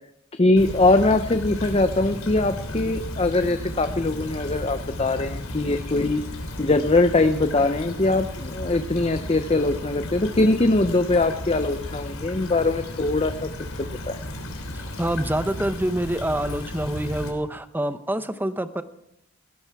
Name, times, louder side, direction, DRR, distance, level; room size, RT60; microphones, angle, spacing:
voice 1, 0.3-6.2 6.6-13.5 13.8-14.2, left 2 dB, 30° left, 9 dB, 0.6 m, -22 dB
Stream / Trickle dribble, 0.6-17.3, left 1 dB, 80° left, 3.5 m, -34 dB
voice 2, 14.7-18.8, right 1 dB, 10° right, 11 dB, 0.8 m, -26 dB
18.5 x 16.0 x 4.7 m, 0.81 s
head